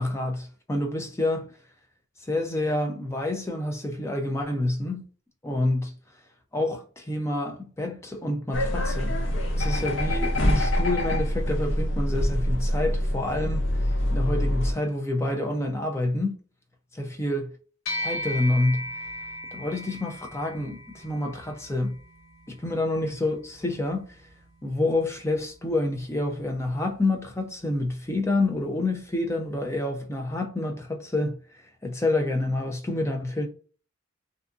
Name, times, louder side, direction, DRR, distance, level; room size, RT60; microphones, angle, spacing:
voice 1, 0.0-1.5 2.3-5.0 5.4-5.9 6.5-9.2 9.6-16.4 16.9-17.5 18.0-18.9 19.5-22.0 22.5-24.0 24.6-31.4 31.8-33.5, left 2 dB, 15° left, 0.4 m, -28 dB
sound 1, 8.5-14.7, left 1 dB, 65° left, 0.6 m, -25 dB
sound 2, 17.9-27.5, equal, 85° left, 0.9 m, -39 dB
2.6 x 2.5 x 2.4 m
head